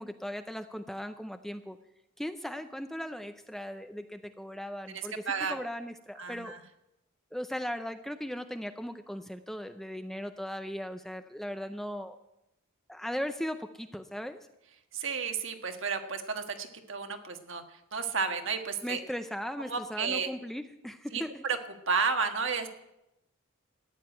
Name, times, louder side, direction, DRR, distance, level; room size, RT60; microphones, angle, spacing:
voice 1, 0.0-1.8 2.2-5.1 5.4-6.5 7.3-12.2 12.9-14.5 18.8-21.4, equal, ahead, 8 dB, 0.5 m, -38 dB
voice 2, 4.9-5.6 6.2-6.6 14.9-19.0 19.7-20.3 21.1-21.6 21.9-22.7, right 5 dB, 60° right, 6 dB, 1.5 m, -32 dB
14.0 x 9.7 x 9.1 m, 0.90 s
head